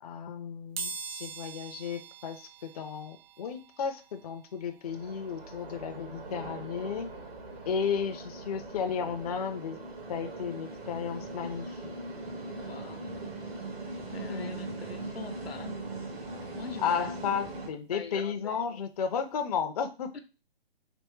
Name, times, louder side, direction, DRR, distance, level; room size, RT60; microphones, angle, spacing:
voice 1, 0.0-7.1 7.7-9.8 10.1-11.9 14.2-14.7 16.8-20.1, left 6 dB, 40° left, 0.4 m, -34 dB
sound 1, 0.8-11.4 11.9-12.0 13.1-13.2 13.5-15.6 16.0-18.6 18.9-19.1 19.4-19.5, right 5 dB, 50° right, 0.4 m, -47 dB
sound 2, 4.8-17.7, right 2 dB, 80° right, 1.4 m, -40 dB
voice 2, 12.5-13.4 14.1-15.9 16.5-17.1 17.9-18.7 20.1-20.2, left 5 dB, 85° left, 0.7 m, -44 dB
3.4 x 2.9 x 3.1 m
figure-of-eight pair, 140°, 30 cm